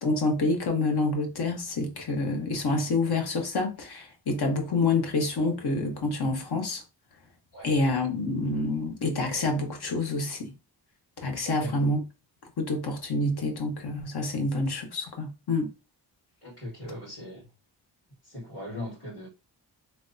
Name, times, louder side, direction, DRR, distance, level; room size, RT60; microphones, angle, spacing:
voice 1, 0.0-6.8 7.6-10.5 11.2-12.0 12.6-15.7, left 2 dB, 60° left, 1.0 m, -27 dB
voice 2, 11.4-11.7 16.4-17.5 18.2-19.3, left 1 dB, 30° left, 1.8 m, -39 dB
3.4 x 2.2 x 2.6 m
cardioid pair, 55°, 44 cm